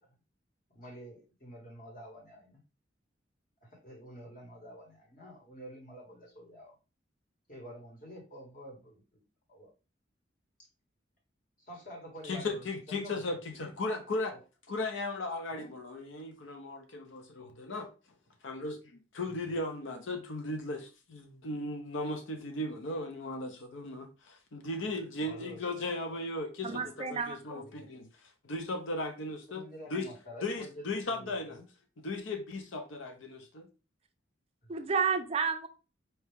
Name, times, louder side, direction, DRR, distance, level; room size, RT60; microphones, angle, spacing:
voice 1, 0.7-2.6 3.6-6.7 7.5-9.2 9.5-9.7 11.6-13.7 14.3-14.4 15.5-15.7 19.3-19.6 24.8-24.9 25.2-26.2 26.7-26.8 27.6-27.9 29.5-31.6 34.6-34.7, equal, 45° left, 1.7 m, -49 dB
voice 2, 12.2-14.3 14.7-17.9 18.4-26.8 27.1-28.1 28.4-29.6 29.9-30.1 30.4-31.6 32.0-33.7, left 2 dB, 75° left, 0.6 m, -36 dB
voice 3, 26.6-27.6 34.7-35.7, right 5 dB, 30° right, 0.4 m, -31 dB
4.5 x 2.8 x 3.4 m
head